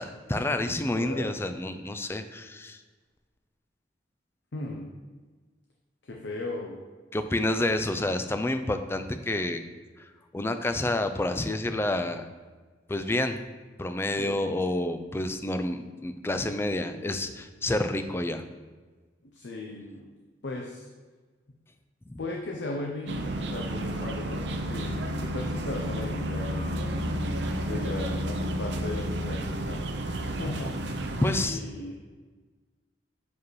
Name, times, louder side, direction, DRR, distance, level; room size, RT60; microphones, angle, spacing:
voice 1, 0.0-2.8 7.1-9.6 10.0-12.3 12.9-13.4 13.8-18.4 22.1-22.2 31.2-31.6, left 1 dB, 15° left, 8 dB, 0.3 m, -29 dB
voice 2, 1.0-1.4 4.5-4.9 6.0-6.8 14.2-14.5 19.3-20.1 20.4-20.9 22.2-26.8 27.7-29.8 30.2-30.7 31.3-32.0, left 2 dB, 65° left, 0 dB, 0.6 m, -37 dB
sound 1, 23.1-31.4, right 1 dB, 65° right, 0.6 m, -31 dB
6.9 x 4.8 x 3.1 m, 1.4 s
head